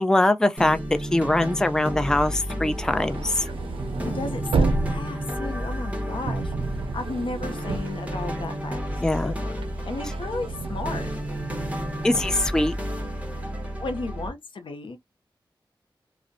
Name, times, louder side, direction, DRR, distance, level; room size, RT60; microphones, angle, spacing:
voice 1, 0.0-3.5 9.0-9.3 12.0-12.7, left 1 dB, 5° left, 0.3 m, -22 dB
sound 1, 0.6-14.3, equal, 15° right, 1.0 m, -32 dB
sound 2, 2.7-8.8 9.2-12.5, right 3 dB, 85° right, 0.4 m, -31 dB
voice 2, 4.0-6.5 6.9-8.8 9.2-9.5 9.8-11.1 13.8-15.0, left 3 dB, 75° left, 0.6 m, -34 dB
2.5 x 2.0 x 2.5 m
cardioid pair, 55°, 9 cm